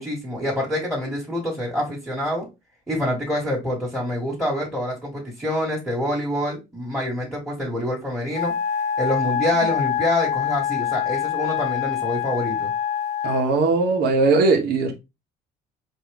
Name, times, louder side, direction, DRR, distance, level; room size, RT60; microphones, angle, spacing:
voice 1, 0.0-2.5 2.9-8.5 9.0-12.7, left 1 dB, ahead, 1.5 m, -26 dB
Wind instrument woodwind instrument, 8.3-13.5, left 8 dB, 45° left, 0.5 m, -25 dB
voice 2, 13.2-14.9, right 3 dB, 70° right, 1.2 m, -19 dB
4.4 x 2.7 x 3.3 m
cardioid pair, 110°, 17 cm